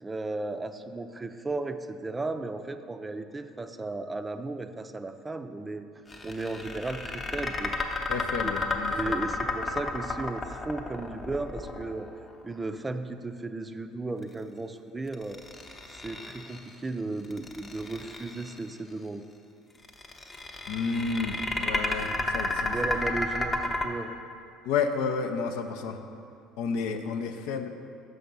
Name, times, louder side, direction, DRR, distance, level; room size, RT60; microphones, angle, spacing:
voice 1, 0.0-5.8 6.2-7.7 8.4-12.1 12.4-15.4 15.9-19.2 22.6-24.2, right 2 dB, 20° right, 8 dB, 0.4 m, -35 dB
sound 1, 6.1-12.3 15.1-16.7 17.2-18.6 19.8-23.8, left 2 dB, 30° left, 0.8 m, -32 dB
voice 2, 8.1-9.1 20.7-22.7 24.7-26.0 26.6-27.7, left 5 dB, 75° left, 6 dB, 0.5 m, -31 dB
6.3 x 5.7 x 5.2 m, 2.4 s
hypercardioid pair, 75°, 0 cm